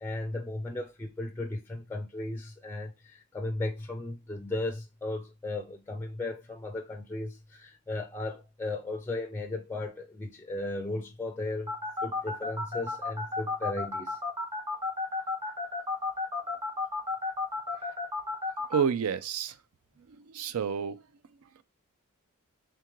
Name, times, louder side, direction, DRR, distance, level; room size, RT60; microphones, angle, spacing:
voice 1, 0.0-11.7 12.0-14.2, left 2 dB, 10° left, 0.4 m, -36 dB
sound 1, 11.7-18.8, left 3 dB, 25° right, 1.4 m, -32 dB
voice 2, 18.7-19.6 20.1-21.0, right 7 dB, 80° right, 0.4 m, -30 dB
3.6 x 3.6 x 3.0 m
head